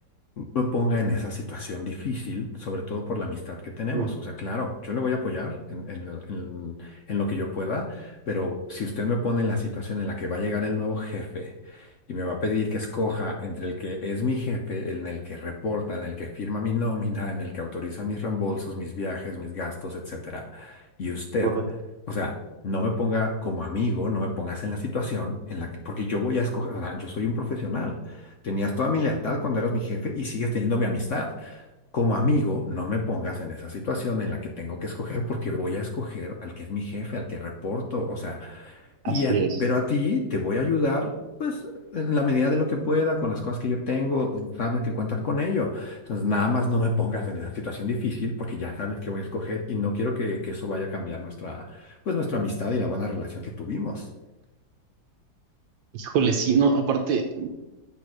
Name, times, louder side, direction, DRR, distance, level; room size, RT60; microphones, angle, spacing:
voice 1, 0.4-21.6 22.1-22.4 22.6-31.7 31.9-41.1 41.4-54.1, left 3 dB, 75° left, 1 dB, 0.6 m, -28 dB
voice 2, 39.0-39.6 55.9-57.5, right 5 dB, 75° right, 5 dB, 1.3 m, -23 dB
8.3 x 3.4 x 6.1 m, 1.1 s
omnidirectional pair, 2.2 m